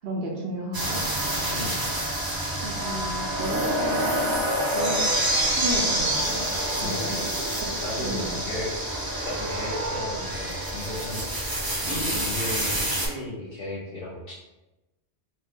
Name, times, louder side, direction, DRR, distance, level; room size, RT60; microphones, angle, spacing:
voice 1, 0.0-1.0 2.6-4.5 4.7-5.0 5.5-6.5 7.0-7.2 8.0-8.4, right 1 dB, 65° right, -2 dB, 0.7 m, -33 dB
sound 1, 0.7-13.1, right 1 dB, 30° right, 0.4 m, -27 dB
voice 2, 6.8-7.3 7.8-8.7 9.2-11.6 11.8-14.3, left 2 dB, 60° left, -5 dB, 0.8 m, -35 dB
2.7 x 2.3 x 3.5 m, 1.0 s
omnidirectional pair, 1.2 m